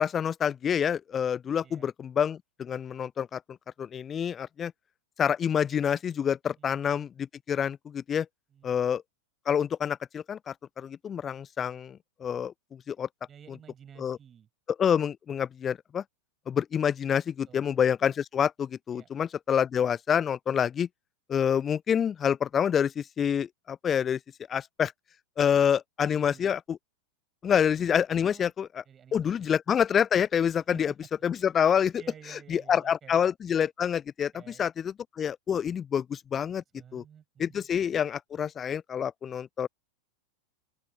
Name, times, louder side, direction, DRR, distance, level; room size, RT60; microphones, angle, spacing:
voice 1, 0.0-3.4 3.8-4.7 5.2-8.3 8.6-9.0 9.5-13.1 14.0-14.2 14.8-16.0 16.5-20.9 21.3-24.2 24.5-24.9 25.4-26.8 27.4-28.8 29.1-30.9 31.2-32.0 32.5-36.6 36.9-37.0 37.4-39.7, left 8 dB, 25° left, 0.4 m, -27 dB
voice 2, 13.3-14.5 17.5-17.6 18.9-19.1 26.0-26.5 28.2-28.5 28.9-29.5 30.6-31.0 32.0-33.2 34.3-34.7 36.5-37.7, right 8 dB, 25° right, 7.3 m, -52 dB
open air
figure-of-eight pair, 90°, 0 cm